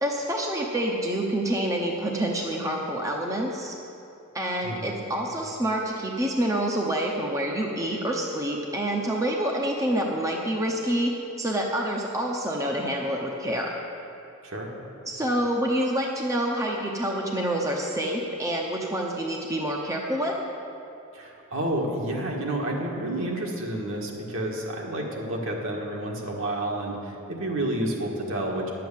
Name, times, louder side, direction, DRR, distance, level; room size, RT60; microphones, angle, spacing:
voice 1, 0.0-3.8 4.3-11.1 11.4-13.8 15.1-20.3, right 1 dB, 15° right, -1 dB, 0.8 m, -27 dB
voice 2, 4.6-4.9 14.4-14.7 21.1-28.7, right 1 dB, 65° right, -1 dB, 1.7 m, -30 dB
10.5 x 7.7 x 7.3 m, 2.8 s
head